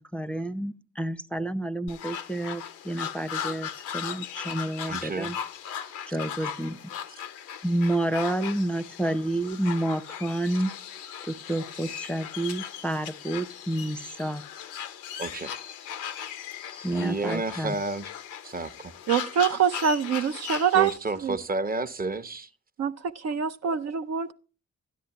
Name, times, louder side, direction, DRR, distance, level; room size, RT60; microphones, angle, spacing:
voice 1, 0.0-5.4 6.1-6.8 7.6-10.7 11.3-14.4 16.8-17.7, right 1 dB, 5° left, 0.6 m, -29 dB
sound 1, 1.9-21.0, left 8 dB, 85° left, 0.6 m, -38 dB
voice 2, 4.9-5.3 15.2-15.5 16.9-18.1 18.4-18.9 20.7-22.5, right 3 dB, 30° right, 0.8 m, -31 dB
voice 3, 19.1-20.9 21.2-21.4 22.8-24.3, right 7 dB, 60° right, 0.5 m, -25 dB
12.5 x 10.0 x 2.9 m
supercardioid pair, 40°, 30 cm